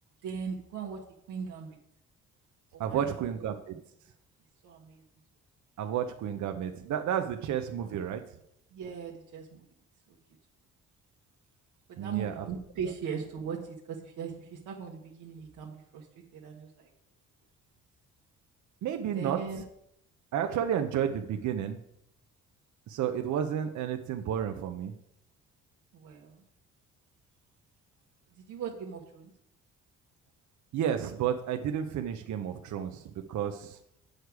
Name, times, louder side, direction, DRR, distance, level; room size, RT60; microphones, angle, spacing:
voice 1, 0.2-1.0 1.3-1.8 2.7-3.8 4.6-5.0 8.7-9.6 11.9-16.1 16.3-16.9 19.1-19.6 25.9-26.4 28.3-29.3, right 6 dB, 85° right, -2 dB, 1.3 m, -39 dB
voice 2, 2.8-3.7 5.8-8.2 12.0-12.4 18.8-19.4 20.3-21.8 22.9-24.9 30.7-33.0 33.3-33.8, right 9 dB, 70° right, 6 dB, 0.8 m, -31 dB
8.0 x 6.5 x 4.8 m, 0.75 s
cardioid pair, 90°, 30 cm